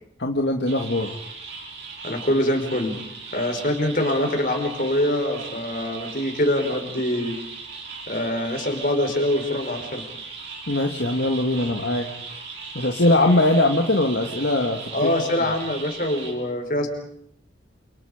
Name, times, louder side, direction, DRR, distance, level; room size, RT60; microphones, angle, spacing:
voice 1, 0.2-1.1 10.7-12.1 12.7-15.1, left 1 dB, 60° left, 2 dB, 1.9 m, -21 dB
sound 1, 0.7-16.3, right 4 dB, 60° right, 5.9 m, -38 dB
voice 2, 2.0-3.0 3.3-7.4 8.1-10.0 14.9-16.9, left 1 dB, 45° left, 4 dB, 4.8 m, -24 dB
28.5 x 27.5 x 5.1 m, 0.69 s
head